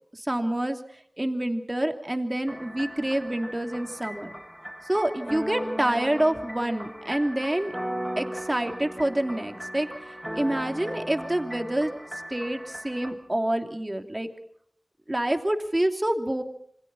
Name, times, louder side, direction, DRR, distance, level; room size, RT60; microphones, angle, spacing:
voice 1, 0.1-0.8 1.2-4.3 4.9-7.7 8.2-9.9 10.3-11.9 12.3-14.3 15.1-16.4, right 1 dB, 25° right, 6 dB, 2.9 m, -27 dB
sound 1, 2.5-13.1, equal, 5° right, 5.3 m, -37 dB
28.0 x 25.5 x 4.3 m, 0.64 s
wide cardioid pair, 65°, 0 cm